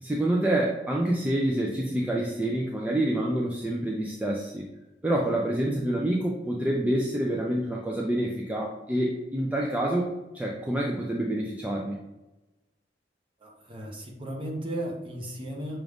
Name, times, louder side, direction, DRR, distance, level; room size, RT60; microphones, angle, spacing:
voice 1, 0.0-4.6 5.0-12.0, right 1 dB, 10° right, -2 dB, 0.4 m, -27 dB
voice 2, 13.4-15.8, right 1 dB, 30° right, 0 dB, 0.9 m, -35 dB
5.9 x 2.5 x 3.4 m, 0.99 s
head